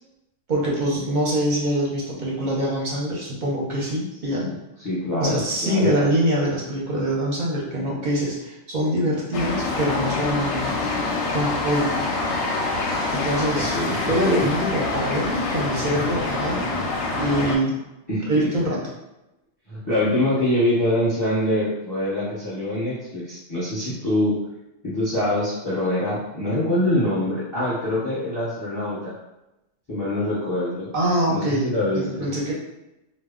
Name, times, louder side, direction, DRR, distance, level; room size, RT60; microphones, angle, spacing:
voice 1, 0.5-4.5 5.2-10.8 11.3-12.0 13.1-13.8 14.1-16.7 17.2-17.8 18.3-18.8 30.9-32.5, right 1 dB, 45° right, -4 dB, 0.6 m, -24 dB
voice 2, 4.8-6.0 13.5-14.5 18.1-18.3 19.7-24.4 24.8-29.2 29.9-30.9 31.3-32.3, left 1 dB, 15° left, -9 dB, 0.8 m, -24 dB
sound 1, 9.3-17.6, left 3 dB, 65° left, 0.8 m, -26 dB
2.2 x 2.1 x 3.5 m, 0.94 s
omnidirectional pair, 1.4 m